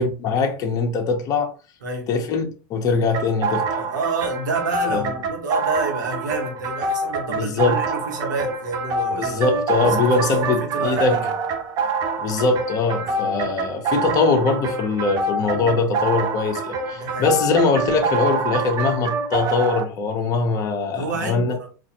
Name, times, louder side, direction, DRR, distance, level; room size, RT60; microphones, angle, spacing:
voice 1, 0.0-1.5 2.1-3.8 4.9-5.1 7.3-7.8 9.2-11.2 12.2-21.6, left 4 dB, 40° left, 0.9 m, -22 dB
sound 1, 3.1-19.8, right 3 dB, 40° right, 0.6 m, -26 dB
voice 2, 3.7-9.4 9.8-11.3 13.0-13.3 15.5-15.8 16.9-17.3 20.9-21.7, right 3 dB, 85° right, 1.2 m, -29 dB
4.2 x 2.6 x 2.9 m
hypercardioid pair, 110°, 10 cm